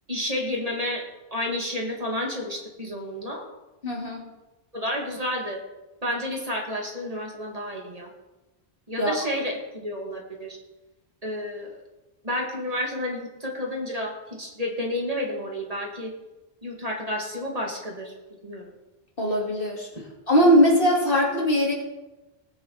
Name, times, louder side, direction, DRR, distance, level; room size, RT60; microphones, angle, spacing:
voice 1, 0.1-1.0 1.3-3.4 4.7-5.6 6.0-8.1 8.9-10.6 11.2-11.8 12.2-16.1 16.6-18.1 18.4-18.7, left 1 dB, 35° right, -1 dB, 2.6 m, -30 dB
voice 2, 3.8-4.2 9.0-9.1 19.2-19.9 20.3-21.7, equal, 60° left, -1 dB, 2.8 m, -20 dB
19.0 x 9.4 x 4.2 m, 1.1 s
omnidirectional pair, 1.0 m